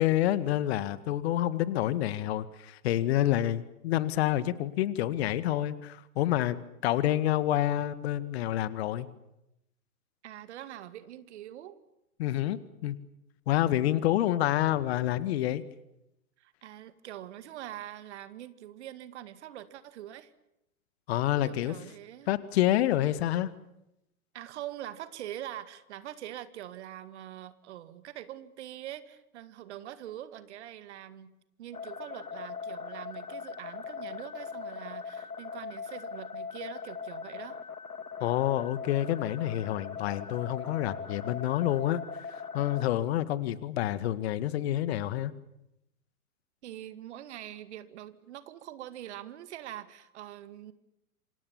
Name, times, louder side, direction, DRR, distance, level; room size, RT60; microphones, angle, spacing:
voice 1, 0.0-6.6 6.8-9.1 12.2-13.0 13.5-15.6 21.1-21.7 22.3-23.5 38.2-42.0 42.5-45.3, left 13 dB, 45° left, 15 dB, 1.9 m, -28 dB
voice 2, 10.2-11.8 16.4-20.3 21.4-22.3 24.3-31.3 31.6-37.6 46.6-50.7, right 12 dB, 50° right, 13 dB, 2.2 m, -44 dB
sound 1, 31.7-42.9, left 5 dB, 85° left, 1.6 m, -40 dB
28.0 x 26.0 x 7.2 m, 0.85 s
figure-of-eight pair, 110°, 43 cm